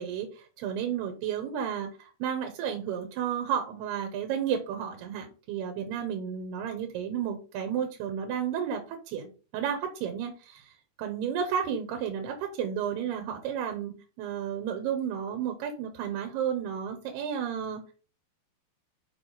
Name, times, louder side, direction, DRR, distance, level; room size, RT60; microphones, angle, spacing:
voice 1, 0.0-17.9, right 8 dB, 75° right, 6 dB, 2.7 m, -32 dB
6.7 x 5.8 x 3.9 m, 0.35 s
omnidirectional pair, 5.3 m